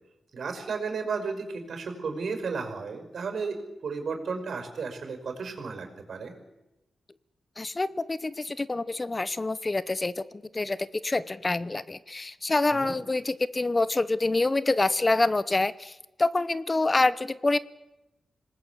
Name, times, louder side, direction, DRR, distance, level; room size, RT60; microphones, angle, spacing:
voice 1, 0.3-6.3 12.7-13.0, right 4 dB, 70° right, 7 dB, 5.6 m, -33 dB
voice 2, 7.6-10.2 10.5-17.6, left 2 dB, 25° left, 16 dB, 0.8 m, -26 dB
27.0 x 19.5 x 8.4 m, 0.97 s
cardioid pair, 90°, 0 cm